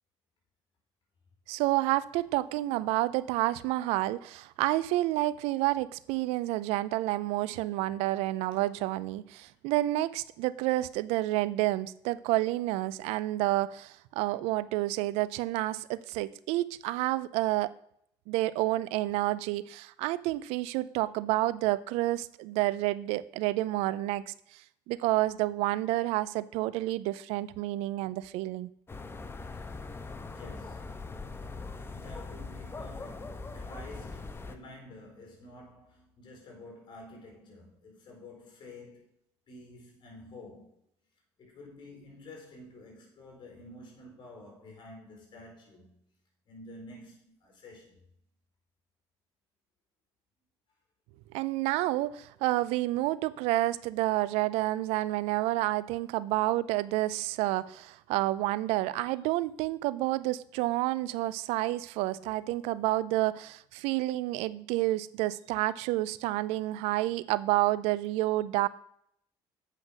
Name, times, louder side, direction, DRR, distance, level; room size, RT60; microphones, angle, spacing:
voice 1, 1.5-17.7 18.3-24.6 24.9-28.7 51.3-68.7, right 17 dB, 85° right, 0.4 m, -29 dB
sound 1, 28.9-34.6, left 3 dB, 20° left, 1.0 m, -41 dB
voice 2, 29.5-31.1 31.9-39.1 39.5-40.8 41.4-45.9 46.5-48.0, left 2 dB, 50° left, 4.3 m, -50 dB
8.2 x 5.8 x 6.2 m
supercardioid pair, 80°, 11 cm